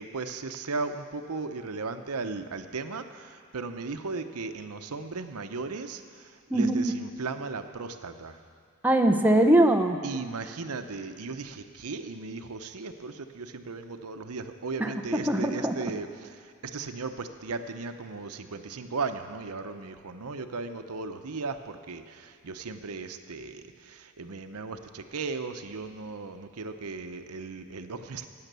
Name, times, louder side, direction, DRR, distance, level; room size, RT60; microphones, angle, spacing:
voice 1, 0.0-8.4 10.0-28.3, right 4 dB, 80° right, 8 dB, 0.8 m, -36 dB
voice 2, 6.5-6.9 8.8-10.0 14.8-15.8, right 1 dB, 10° right, 4 dB, 0.7 m, -22 dB
15.5 x 9.6 x 6.8 m, 2.1 s
head